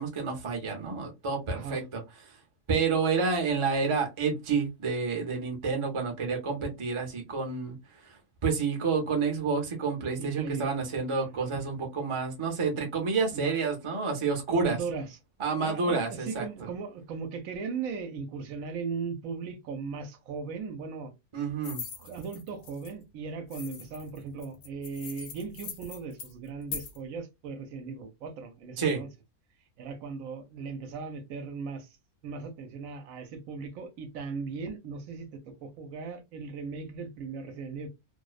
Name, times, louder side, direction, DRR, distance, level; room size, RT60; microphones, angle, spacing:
voice 1, 0.0-2.0 2.3-2.4 2.7-14.8 15.4-16.4 21.3-21.8 28.8-29.0, right 4 dB, 40° right, 0.4 m, -29 dB
voice 2, 1.5-1.8 10.1-10.7 11.3-11.4 13.3-13.5 14.5-15.2 15.6-21.1 22.0-29.1 29.8-32.0 32.2-37.9, right 5 dB, 75° right, 0.9 m, -38 dB
sound 1, 21.6-22.9 23.5-27.0, left 6 dB, 80° left, 1.1 m, -41 dB
2.6 x 2.0 x 2.3 m
omnidirectional pair, 1.5 m